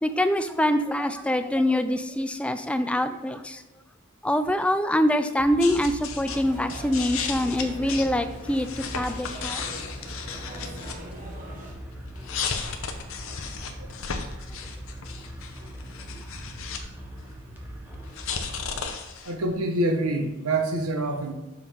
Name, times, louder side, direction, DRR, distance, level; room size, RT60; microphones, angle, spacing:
voice 1, 0.0-3.6 4.2-9.6 16.1-16.2, left 1 dB, 5° left, 10 dB, 0.3 m, -25 dB
sound 1, 5.4-18.8, equal, 10° right, 0.9 m, -41 dB
sound 2, 5.6-6.4 6.7-11.1 12.1-16.8 17.1-19.4, left 6 dB, 70° left, 0.8 m, -35 dB
sound 3, 6.2-11.7, right 1 dB, 40° right, 1.4 m, -43 dB
voice 2, 19.2-21.3, right 2 dB, 90° right, 5 dB, 1.0 m, -26 dB
7.0 x 5.5 x 3.5 m, 1.0 s
head